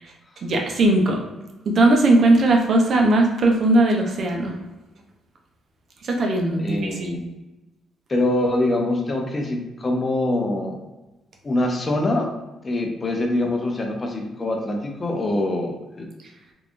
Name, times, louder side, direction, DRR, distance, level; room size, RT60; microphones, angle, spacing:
voice 1, 0.4-1.2 1.7-4.5 6.0-7.2, right 2 dB, 55° right, 1 dB, 0.8 m, -18 dB
voice 2, 6.6-7.3 8.1-10.8 11.4-12.3 12.6-16.1, left 1 dB, 30° left, 2 dB, 0.7 m, -24 dB
3.6 x 3.2 x 2.5 m, 1.1 s
cardioid pair, 90°, 0 cm